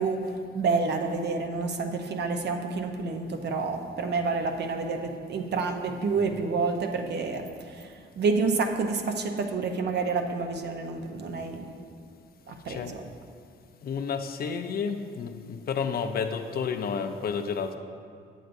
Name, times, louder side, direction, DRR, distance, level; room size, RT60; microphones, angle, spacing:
voice 1, 0.0-11.7 12.5-13.0, right 4 dB, 60° right, 4 dB, 0.7 m, -29 dB
voice 2, 13.8-17.8, left 6 dB, 50° left, 7 dB, 0.5 m, -31 dB
8.2 x 7.7 x 2.6 m, 2.2 s
cardioid pair, 90°, 20 cm